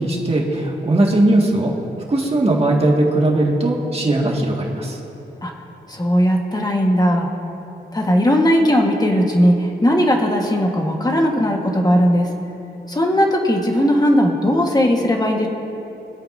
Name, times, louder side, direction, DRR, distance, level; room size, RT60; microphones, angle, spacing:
voice 1, 0.0-1.7 2.1-5.0, right 1 dB, 35° right, -2 dB, 1.8 m, -18 dB
voice 2, 5.9-7.3 7.9-12.3 12.9-15.5, equal, 20° left, 1 dB, 1.4 m, -17 dB
25.0 x 8.6 x 2.7 m, 2.9 s
wide cardioid pair, 100°, 18 cm